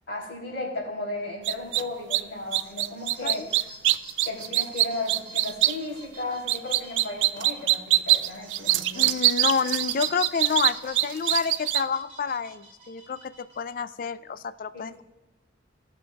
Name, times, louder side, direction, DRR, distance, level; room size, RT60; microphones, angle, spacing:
voice 1, 0.1-3.4 4.2-9.1 14.7-14.8, left 2 dB, 90° left, -3 dB, 3.5 m, -35 dB
sound 1, 1.4-1.8 2.1-2.2 2.5-5.7 6.5-11.8, right 15 dB, 85° right, 0.3 m, -22 dB
sound 2, 2.5-13.7, right 4 dB, 30° right, 1.8 m, -44 dB
voice 2, 8.9-15.0, left 6 dB, 50° left, 14 dB, 0.4 m, -29 dB
18.5 x 6.3 x 2.4 m, 1.1 s
head